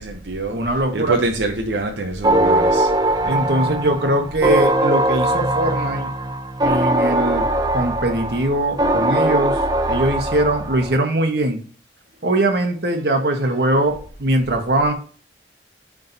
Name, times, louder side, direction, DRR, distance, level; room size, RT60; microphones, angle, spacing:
voice 1, 0.0-0.6 0.9-2.9, right 2 dB, 85° right, 3 dB, 0.8 m, -24 dB
voice 2, 0.5-1.2 3.2-6.1 6.6-7.5 7.7-9.6 9.9-11.6 12.2-14.9, right 1 dB, 65° right, 4 dB, 1.3 m, -21 dB
sound 1, 2.2-11.0, right 1 dB, 25° right, 0.6 m, -20 dB
9.0 x 3.8 x 2.8 m, 0.43 s
head